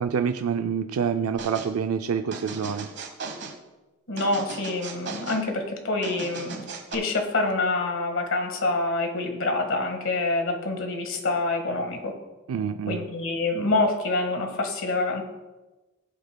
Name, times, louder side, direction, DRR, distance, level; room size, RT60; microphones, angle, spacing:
voice 1, 0.0-2.9 12.5-13.0, right 7 dB, 90° right, 7 dB, 0.4 m, -27 dB
sound 1, 1.4-1.7 2.3-3.6 4.2-5.4 6.0-7.0, right 4 dB, 55° right, 1.1 m, -37 dB
voice 2, 4.1-6.7 6.9-12.1 12.9-15.2, left 2 dB, 65° left, 4 dB, 1.6 m, -26 dB
16.0 x 7.9 x 2.2 m, 1.1 s
head